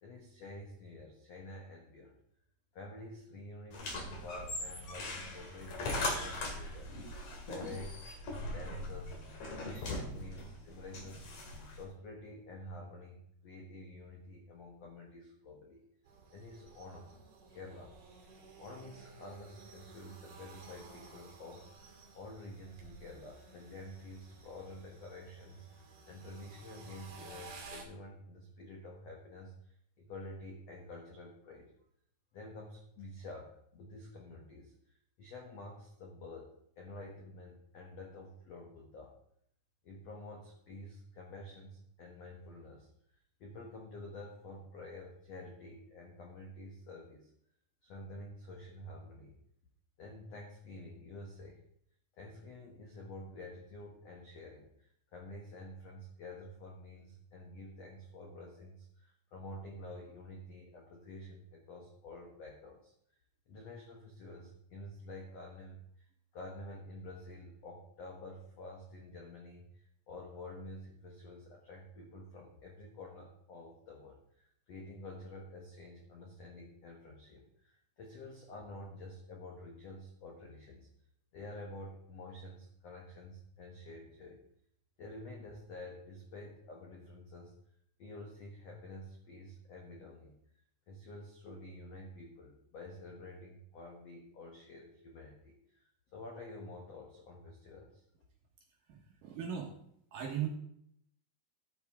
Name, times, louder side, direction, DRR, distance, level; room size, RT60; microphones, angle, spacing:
voice 1, 0.0-2.1 2.7-6.9 7.5-8.2 8.5-9.2 9.6-11.3 11.8-15.8 16.3-17.1 17.5-21.9 22.1-31.7 32.3-39.2 39.8-42.9 43.4-47.3 47.8-49.3 50.0-51.6 52.2-62.9 63.5-66.0 66.3-80.9 81.3-84.4 85.0-87.5 88.0-90.4 90.9-98.0, left 1 dB, 90° left, 0 dB, 1.4 m, -49 dB
sound 1, 3.7-11.8, left 2 dB, 50° left, 2.7 m, -40 dB
sound 2, 16.0-27.8, right 4 dB, 50° right, 3.1 m, -55 dB
voice 2, 98.9-99.7 100.1-100.5, right 9 dB, 70° right, 1 dB, 2.2 m, -38 dB
13.5 x 8.0 x 3.6 m, 0.69 s
omnidirectional pair, 5.2 m